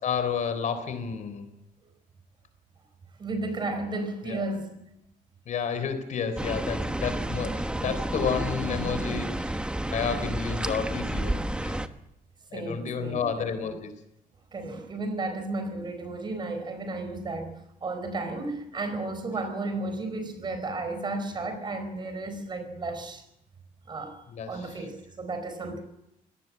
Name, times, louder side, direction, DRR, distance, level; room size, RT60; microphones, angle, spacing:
voice 1, 0.0-1.5 4.2-4.4 5.5-11.3 11.6-11.8 12.5-13.9 24.3-24.8, left 6 dB, 60° left, 10 dB, 3.7 m, -31 dB
voice 2, 3.2-4.7 12.5-13.7 14.5-17.5 17.8-23.2 23.9-25.8, right 2 dB, 30° right, 9 dB, 4.4 m, -33 dB
sound 1, 6.4-11.9, right 1 dB, 5° right, 1.1 m, -30 dB
23.0 x 18.5 x 7.5 m, 0.82 s
cardioid pair, 155°, 14 cm